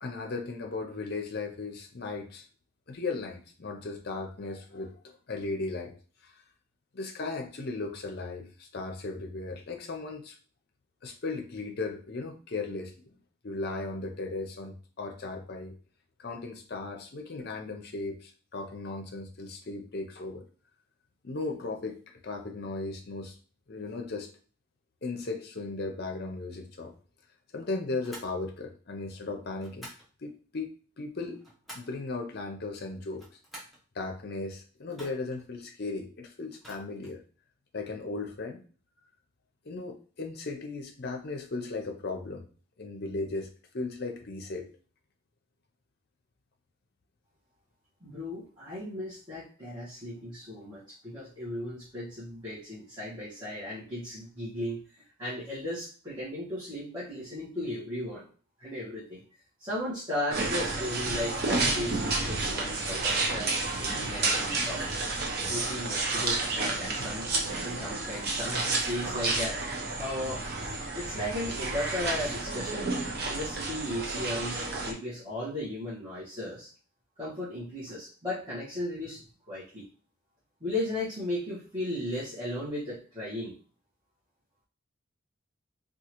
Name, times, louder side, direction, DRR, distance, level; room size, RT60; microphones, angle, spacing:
voice 1, 0.0-2.4 2.9-5.9 6.2-6.3 6.9-10.4 11.0-12.9 13.4-15.7 16.2-20.4 21.2-23.4 23.7-24.3 25.0-26.9 27.5-29.9 30.2-31.4 31.7-33.2 33.9-37.2 37.7-38.6 39.6-42.5 42.8-43.5 43.7-44.7, left 3 dB, 45° left, 3 dB, 0.6 m, -36 dB
sound 1, 28.0-28.4 29.6-30.1 31.1-32.0 33.1-33.8 34.9-35.4 36.5-37.2, right 1 dB, ahead, 0.9 m, -48 dB
voice 2, 48.0-54.8 55.2-58.3 58.6-59.2 59.6-63.5 63.8-64.8 65.5-67.3 67.6-69.6 70.0-70.4 70.9-72.9 73.3-76.7 77.2-79.8 80.6-83.6, left 1 dB, 20° right, -11 dB, 1.2 m, -36 dB
sound 2, 60.3-74.9, right 3 dB, 45° right, 0.6 m, -31 dB
3.7 x 2.3 x 2.9 m, 0.40 s
head